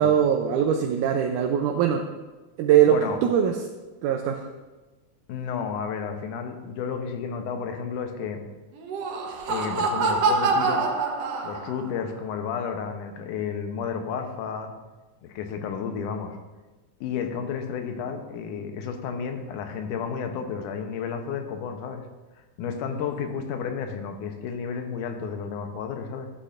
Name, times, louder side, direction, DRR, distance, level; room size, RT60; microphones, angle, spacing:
voice 1, 0.0-2.0 2.6-2.9 3.2-3.6 4.0-4.4, right 9 dB, 80° right, 3 dB, 2.1 m, -21 dB
voice 2, 2.9-3.2 5.3-8.4 9.5-10.8 11.4-14.7 15.2-16.4 17.0-22.1 22.6-26.3, left 6 dB, 80° left, 6 dB, 2.3 m, -32 dB
Laughter, 8.8-11.9, right 4 dB, 65° right, 1.8 m, -25 dB
13.0 x 8.5 x 2.5 m, 1.2 s
omnidirectional pair, 3.6 m